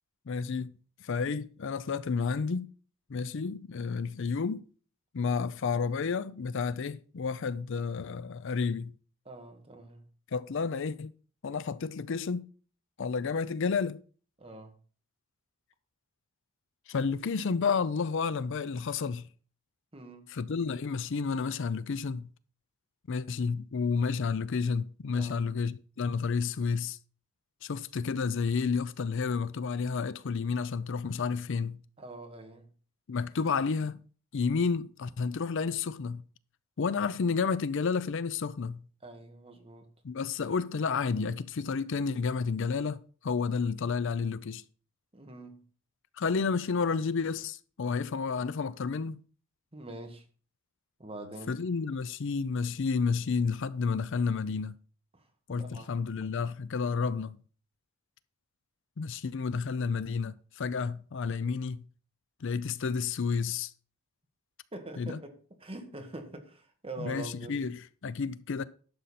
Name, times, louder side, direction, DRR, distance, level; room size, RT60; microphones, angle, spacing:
voice 1, 0.3-0.7 1.0-2.7 3.1-4.7 5.1-8.9 10.3-11.1 11.4-12.5 13.0-14.0 16.9-19.3 20.3-22.3 23.1-27.0 27.6-31.8 33.1-34.0 34.3-36.2 36.8-38.8 40.0-44.6 46.2-49.2 51.5-54.8 55.5-57.4 59.0-61.8 62.4-63.7 65.0-65.2 67.0-68.6, left 5 dB, 60° left, 0.5 m, -31 dB
voice 2, 9.2-10.0 14.4-14.7 19.9-20.3 25.1-25.4 32.0-32.7 39.0-39.9 45.1-45.6 49.7-50.2 51.0-51.6 55.1-55.2 55.5-55.9 64.7-67.6, right 2 dB, 25° right, 1.5 m, -44 dB
11.5 x 6.8 x 4.2 m
head